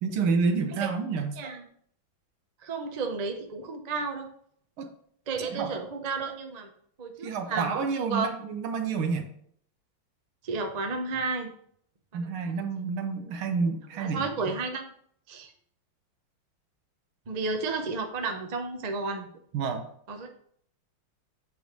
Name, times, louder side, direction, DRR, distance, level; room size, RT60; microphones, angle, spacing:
voice 1, 0.0-1.4 4.8-4.9 5.5-5.7 7.2-9.3 12.1-14.5 19.5-19.8, right 5 dB, 80° right, 6 dB, 1.8 m, -29 dB
voice 2, 1.4-1.7 2.6-4.3 5.3-6.7 7.0-8.3 10.4-11.5 12.1-12.6 13.9-14.9 15.3-15.5 17.3-19.3 20.1-20.3, right 4 dB, 55° right, 4 dB, 0.4 m, -32 dB
8.4 x 3.5 x 6.0 m, 0.65 s
omnidirectional pair, 2.3 m